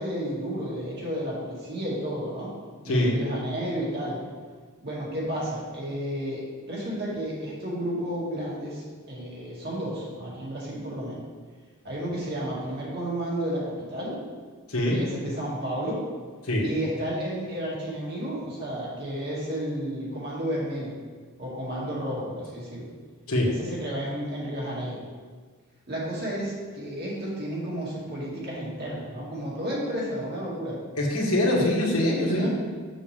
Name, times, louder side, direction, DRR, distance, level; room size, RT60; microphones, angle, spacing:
voice 1, 0.0-2.5 2.8-4.2 4.8-6.4 6.7-11.2 11.8-14.2 14.9-16.0 16.6-21.0 21.4-22.9 23.4-25.0 25.9-30.8 32.2-32.5, right 1 dB, 50° right, -5 dB, 2.3 m, -32 dB
voice 2, 2.8-3.2 14.7-15.0 16.4-16.6 23.3-23.5 31.0-32.5, left 1 dB, 85° left, -3 dB, 1.6 m, -23 dB
7.2 x 6.3 x 3.5 m, 1.5 s
head